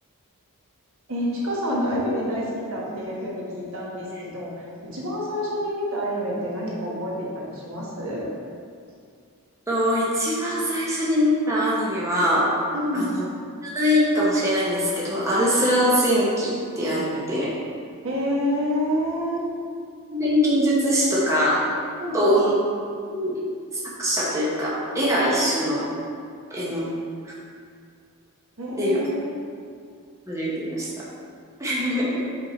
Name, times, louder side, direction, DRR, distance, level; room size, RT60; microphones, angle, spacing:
voice 1, 1.1-8.3 12.7-13.1 18.0-19.4 22.0-22.3 28.6-29.3, equal, 65° right, -5 dB, 1.3 m, -28 dB
voice 2, 9.7-12.5 12.9-13.2 13.6-17.5 20.1-21.6 22.1-22.5 22.9-23.4 24.0-25.9 26.5-26.9 28.7-29.0 30.3-30.9 31.6-32.2, equal, 15° right, -7 dB, 0.9 m, -22 dB
5.4 x 4.4 x 4.2 m, 2.2 s
head